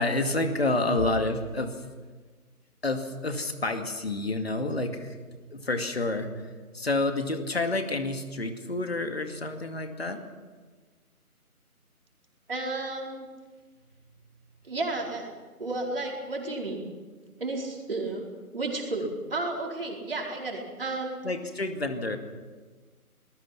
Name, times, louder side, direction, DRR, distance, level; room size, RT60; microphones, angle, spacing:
voice 1, 0.0-1.9 2.8-5.2 5.5-10.2 21.2-22.2, left 2 dB, 45° left, 6 dB, 2.3 m, -29 dB
voice 2, 12.5-13.3 14.7-15.3 15.6-16.9 17.4-18.3 18.5-21.2, right 2 dB, 40° right, 0 dB, 4.7 m, -32 dB
28.5 x 20.0 x 6.0 m, 1.4 s
figure-of-eight pair, 170°, 45 cm